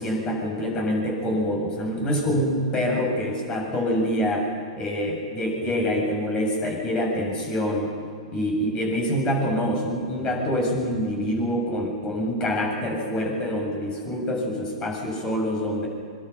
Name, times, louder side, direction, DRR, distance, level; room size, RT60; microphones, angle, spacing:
voice 1, 0.0-4.5 4.8-7.9 8.3-15.9, equal, 25° left, 1 dB, 7.6 m, -26 dB
25.5 x 24.5 x 6.0 m, 2.3 s
figure-of-eight pair, 105°, 3 cm